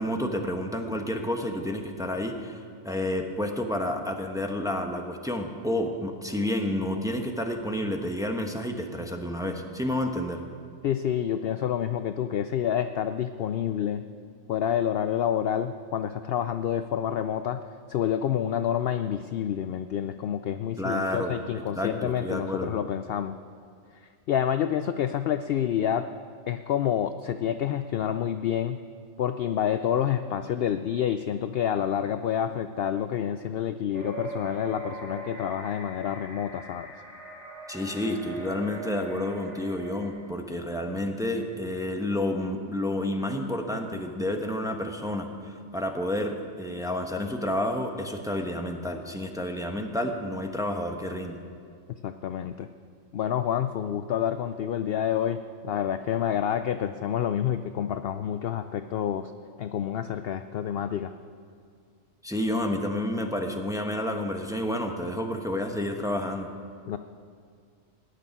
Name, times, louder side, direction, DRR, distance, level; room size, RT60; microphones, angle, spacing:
voice 1, 0.0-10.4 20.8-21.4 21.7-22.8 37.7-51.4 62.2-66.5, left 1 dB, 5° right, 3 dB, 1.0 m, -30 dB
voice 2, 10.8-14.0 14.5-17.6 17.9-23.4 24.0-26.1 26.5-28.8 29.2-36.9 52.0-52.7 53.1-59.3 59.6-61.1 66.9-67.0, left 9 dB, 65° left, 10 dB, 0.6 m, -28 dB
sound 1, 33.9-40.1, right 2 dB, 60° right, 3.1 m, -41 dB
18.0 x 6.9 x 9.9 m, 2.2 s
omnidirectional pair, 1.3 m